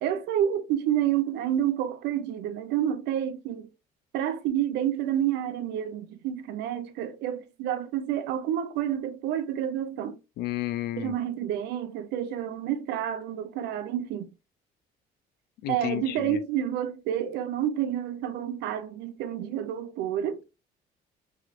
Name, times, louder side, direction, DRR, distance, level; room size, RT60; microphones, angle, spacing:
voice 1, 0.0-3.7 4.1-10.2 11.0-14.3 15.7-20.4, right 10 dB, 85° right, 0.5 m, -29 dB
voice 2, 10.4-11.1 15.6-16.4, left 13 dB, 70° left, 0.4 m, -31 dB
3.2 x 2.8 x 2.5 m
cardioid pair, 110°, 17 cm